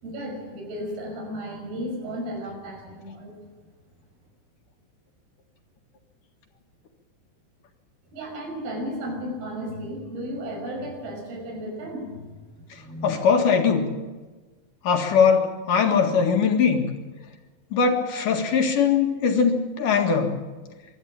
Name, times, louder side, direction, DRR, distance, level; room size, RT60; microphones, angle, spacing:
voice 1, 0.0-3.3 8.1-12.4 12.7-13.2, equal, 90° right, 2 dB, 7.6 m, -34 dB
voice 2, 12.7-13.9 14.8-16.9 17.7-20.3, left 6 dB, 65° left, 3 dB, 3.3 m, -21 dB
24.5 x 13.0 x 8.8 m, 1.3 s
omnidirectional pair, 4.2 m